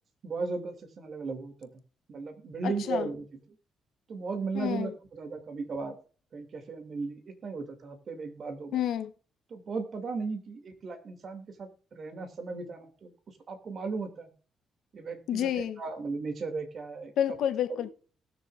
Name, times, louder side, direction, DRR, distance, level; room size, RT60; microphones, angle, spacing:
voice 1, 0.2-1.7 2.1-3.3 4.1-6.0 6.3-8.8 9.5-13.1 13.5-14.3 14.9-17.1 17.7-17.8, right 4 dB, 50° right, 2.6 m, -36 dB
voice 2, 2.6-3.1 4.5-4.9 8.7-9.1 15.3-15.8 17.2-17.9, left 10 dB, 75° left, 1.0 m, -29 dB
19.5 x 6.9 x 2.6 m
cardioid pair, 90°, 0 cm